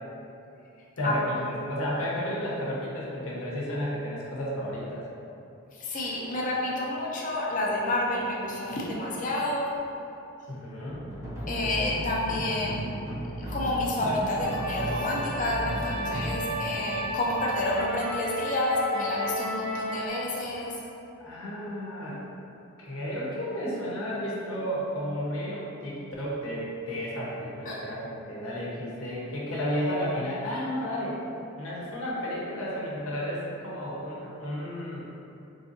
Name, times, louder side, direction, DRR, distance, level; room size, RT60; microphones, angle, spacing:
voice 1, 1.0-5.1 10.5-11.0 21.2-22.2 22.8-31.2 31.6-35.1, equal, 75° left, -6 dB, 0.8 m, -32 dB
voice 2, 5.8-9.7 11.5-12.9 13.4-20.7 27.7-27.8, left 1 dB, 35° left, -4 dB, 0.5 m, -29 dB
sound 1, 10.9-18.1, right 1 dB, 15° right, 0.6 m, -36 dB
sound 2, 14.4-20.1, equal, 85° right, 0.7 m, -34 dB
3.9 x 2.6 x 2.6 m, 2.8 s
head